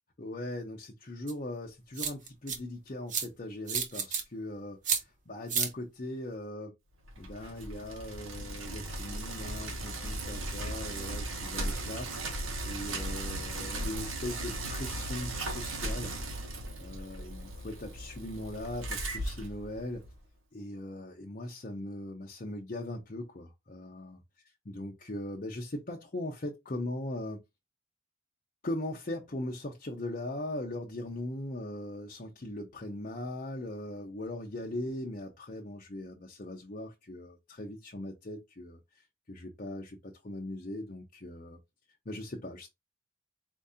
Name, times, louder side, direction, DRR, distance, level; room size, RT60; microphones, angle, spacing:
voice 1, 0.2-6.7 7.2-12.1 12.6-16.1 16.8-20.0 20.5-24.2 24.7-27.4 28.6-41.6 42.1-42.7, left 1 dB, 40° left, 0.7 m, -39 dB
sound 1, 1.3-1.4 2.0-2.6 3.1-3.3 3.7-4.2 4.8-5.0 5.5-5.7, right 6 dB, 35° right, 0.7 m, -30 dB
Bicycle, 7.0-20.2, right 2 dB, 75° right, 1.2 m, -37 dB
4.5 x 2.7 x 3.5 m
head